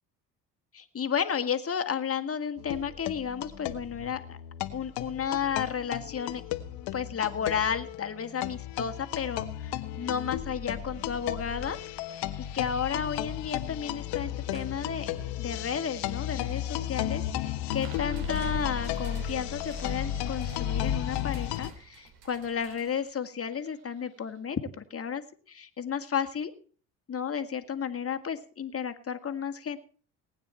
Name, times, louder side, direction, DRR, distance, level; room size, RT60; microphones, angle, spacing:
voice 1, 0.7-4.4 4.7-6.4 6.9-11.8 12.1-12.3 12.5-15.1 15.4-25.2 25.5-26.5 27.1-29.8, left 7 dB, 35° left, 8 dB, 2.0 m, -32 dB
sound 1, 2.6-21.7, left 11 dB, 75° left, 1.3 m, -34 dB
sound 2, 14.0-14.8 15.2-15.3 16.1-17.1 17.4-17.7 18.2-19.1 20.0-20.1, right 2 dB, 25° right, 5.1 m, -48 dB
sound 3, 17.8-24.4, right 6 dB, 70° right, 3.1 m, -50 dB
19.0 x 9.5 x 4.4 m, 0.42 s
supercardioid pair, 70°, 39 cm